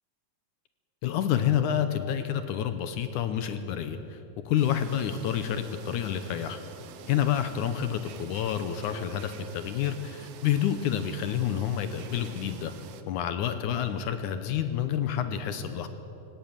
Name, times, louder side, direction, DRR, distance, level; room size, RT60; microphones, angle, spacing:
voice 1, 1.0-4.2 4.5-6.6 7.1-12.7 13.1-15.9, left 9 dB, 75° left, 10 dB, 2.1 m, -28 dB
sound 1, 4.6-13.0, right 9 dB, 85° right, 2.8 m, -48 dB
18.0 x 16.5 x 9.0 m, 2.8 s
omnidirectional pair, 4.0 m